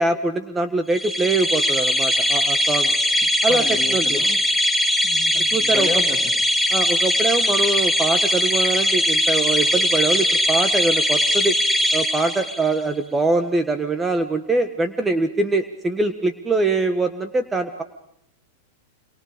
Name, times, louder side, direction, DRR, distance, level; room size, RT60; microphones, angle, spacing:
voice 1, 0.0-3.0 3.4-3.6 3.9-4.2 5.3-5.9 6.7-11.6 11.9-17.8, right 3 dB, 15° right, 8 dB, 1.5 m, -23 dB
sound 1, 0.9-12.8, equal, ahead, 2.0 m, -20 dB
voice 2, 3.1-4.4 5.0-6.4, left 6 dB, 25° left, 3 dB, 3.0 m, -33 dB
27.5 x 23.0 x 5.1 m, 0.71 s
hypercardioid pair, 105°, 0 cm